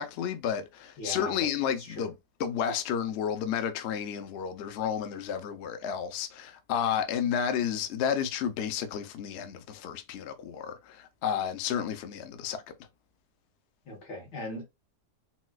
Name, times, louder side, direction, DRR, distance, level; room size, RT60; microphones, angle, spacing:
voice 1, 0.0-2.1 2.4-12.6, left 8 dB, 70° left, 0.6 m, -31 dB
voice 2, 1.0-2.1 13.9-14.6, left 1 dB, 85° left, 1.9 m, -39 dB
4.0 x 2.3 x 2.3 m
omnidirectional pair, 1.8 m